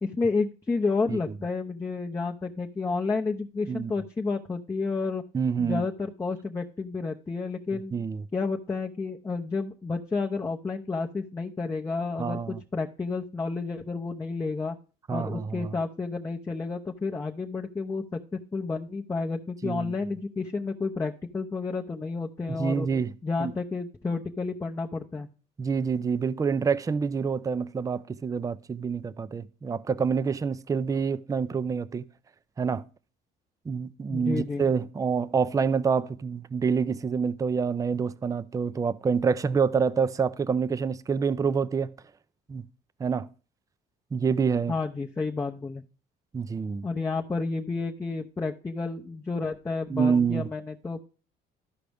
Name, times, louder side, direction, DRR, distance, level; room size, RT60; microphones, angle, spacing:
voice 1, 0.0-5.2 5.6-7.9 8.3-14.8 15.1-22.9 23.2-25.3 34.1-34.6 44.7-45.8 46.8-51.0, left 4 dB, 15° left, 0.7 m, -31 dB
voice 2, 5.3-5.9 7.9-8.2 12.2-12.6 15.1-15.8 19.6-19.9 22.5-23.1 23.4-23.5 25.6-32.0 32.6-32.8 33.7-41.9 42.5-42.7 43.0-43.3 44.1-44.7 46.3-46.9 49.9-50.5, right 6 dB, 20° right, 0.4 m, -27 dB
13.0 x 5.1 x 3.4 m
cardioid pair, 110°, 17 cm